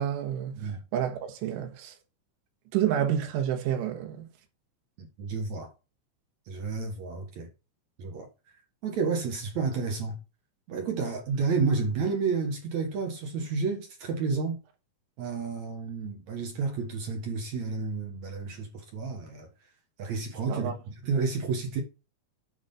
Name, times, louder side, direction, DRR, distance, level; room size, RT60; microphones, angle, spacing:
voice 1, 0.0-0.6 0.9-2.0 2.7-4.3 20.5-20.8, right 10 dB, 90° right, 3.8 m, -29 dB
voice 2, 5.0-5.7 6.5-7.5 8.0-8.3 8.8-10.2 10.7-14.6 15.2-19.5 20.0-21.8, right 4 dB, 65° right, 1.8 m, -31 dB
10.5 x 5.0 x 5.5 m
omnidirectional pair, 5.5 m